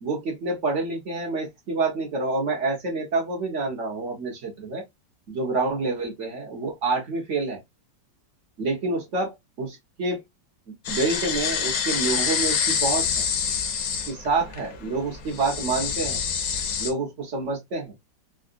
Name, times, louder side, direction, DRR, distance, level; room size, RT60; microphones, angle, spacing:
voice 1, 0.0-4.8 5.3-7.6 8.6-10.2 10.9-13.2 13.9-16.2 16.8-17.9, right 3 dB, 45° right, 1.2 m, -27 dB
sound 1, 10.8-16.9, left 7 dB, 60° left, 1.0 m, -27 dB
3.7 x 2.4 x 2.4 m
omnidirectional pair, 2.0 m